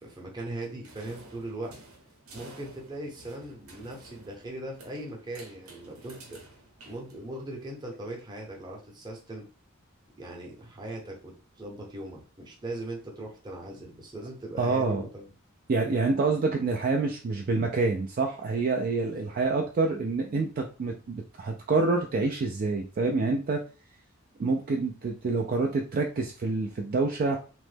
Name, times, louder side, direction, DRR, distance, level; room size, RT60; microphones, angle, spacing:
voice 1, 0.0-1.7 2.3-6.4 6.8-9.4 10.1-15.3 19.0-19.4, right 1 dB, 20° right, -1 dB, 0.7 m, -39 dB
sound 1, 0.8-7.6, right 2 dB, 90° right, 0.9 m, -51 dB
voice 2, 14.6-15.0 15.7-23.6 24.4-27.4, right 3 dB, 45° right, 2 dB, 0.3 m, -27 dB
3.0 x 2.1 x 3.2 m, 0.36 s
head